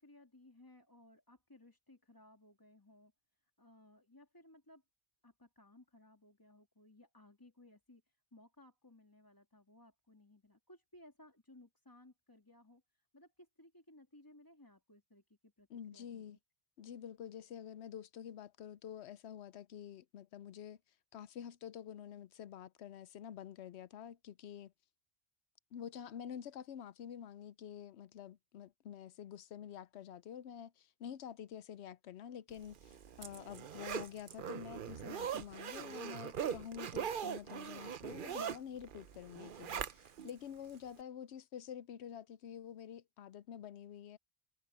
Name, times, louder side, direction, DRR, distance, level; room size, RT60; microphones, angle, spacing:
voice 1, 0.0-3.1 3.6-4.8 5.2-16.4, left 1 dB, 20° left, 2.6 m, -61 dB
voice 2, 15.7-16.4 16.8-20.8 21.1-24.7 25.7-44.2, left 9 dB, 80° left, 0.9 m, -48 dB
Zipper (clothing), 32.7-40.3 40.7-40.8, right 8 dB, 55° right, 0.8 m, -41 dB
omnidirectional pair, 1.1 m